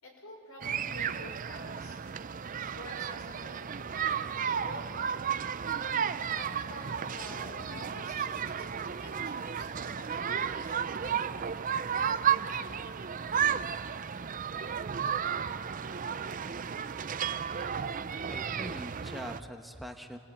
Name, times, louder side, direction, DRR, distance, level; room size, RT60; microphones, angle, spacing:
voice 1, 0.0-2.0 2.3-4.3 4.6-5.2 6.3-10.9, left 1 dB, 85° left, 0 dB, 5.8 m, -49 dB
sound 1, 0.6-19.4, right 7 dB, 40° right, 0.5 m, -33 dB
voice 2, 18.3-20.2, equal, ahead, 4 dB, 1.0 m, -43 dB
28.5 x 18.5 x 8.9 m, 2.5 s
head